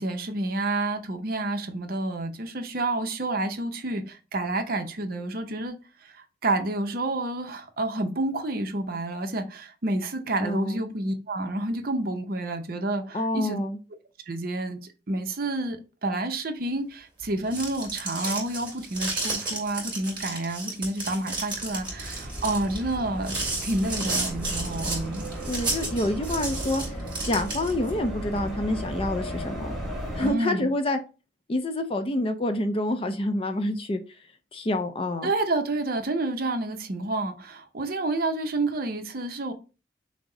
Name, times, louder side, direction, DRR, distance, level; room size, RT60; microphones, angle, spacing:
voice 1, 0.0-5.8 6.0-13.6 14.3-23.3 23.6-25.3 30.2-30.7 35.2-39.5, right 2 dB, 50° right, 0.7 m, -29 dB
voice 2, 10.4-10.8 13.1-13.8 25.5-27.0 27.2-29.7 30.1-31.0 31.5-34.0 34.5-35.3, left 1 dB, 30° left, 0.4 m, -27 dB
sound 1, 17.3-27.9, right 2 dB, 25° right, 2.3 m, -32 dB
sound 2, 21.5-30.3, equal, ahead, 1.4 m, -35 dB
6.1 x 2.0 x 3.8 m
head